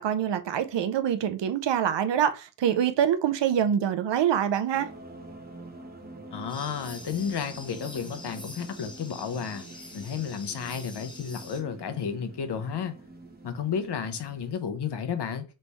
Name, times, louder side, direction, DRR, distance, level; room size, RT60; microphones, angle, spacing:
voice 1, 0.0-4.9, right 9 dB, 65° right, 0.6 m, -25 dB
sound 1, 4.7-14.5, right 2 dB, 20° right, 0.6 m, -46 dB
voice 2, 6.3-9.7 9.9-13.0 13.4-15.4, left 7 dB, 60° left, 0.7 m, -32 dB
sound 2, 6.5-11.6, left 2 dB, 10° left, 0.9 m, -46 dB
3.4 x 3.2 x 4.0 m
wide cardioid pair, 160°, 46 cm